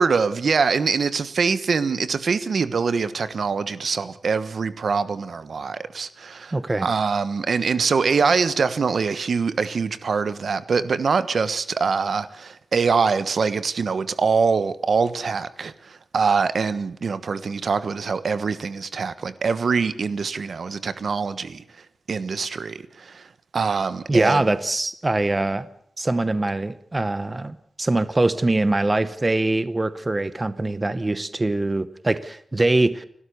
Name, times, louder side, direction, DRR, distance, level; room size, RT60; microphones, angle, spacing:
voice 1, 0.0-6.5 6.8-21.6 22.1-23.3 23.5-24.4, right 5 dB, 70° right, 1.3 m, -24 dB
voice 2, 6.5-6.9 24.1-25.7 26.0-33.0, right 2 dB, 20° right, 0.8 m, -23 dB
29.5 x 13.0 x 6.9 m
wide cardioid pair, 145°, 0 cm